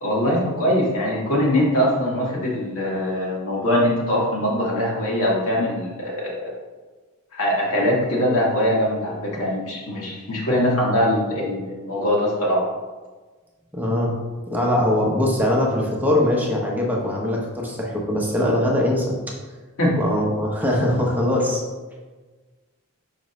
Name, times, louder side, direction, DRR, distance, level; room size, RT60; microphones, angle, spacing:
voice 1, 0.0-6.5 7.3-12.6 19.8-20.0, equal, 75° left, -4 dB, 1.8 m, -22 dB
voice 2, 13.7-14.2 14.5-19.2 19.9-21.6, left 1 dB, 10° right, -2 dB, 0.9 m, -21 dB
6.0 x 5.0 x 3.2 m, 1.3 s
head